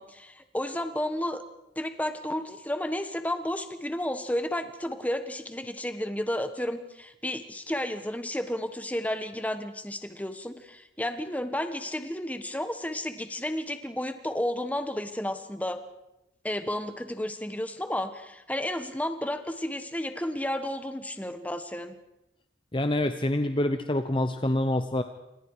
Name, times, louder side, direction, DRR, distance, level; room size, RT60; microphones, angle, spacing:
voice 1, 0.0-1.4 1.7-15.8 16.4-21.9, left 1 dB, 10° left, 8 dB, 1.3 m, -32 dB
voice 2, 22.7-25.0, left 1 dB, 25° left, 8 dB, 0.8 m, -26 dB
28.5 x 26.5 x 4.9 m, 0.92 s
head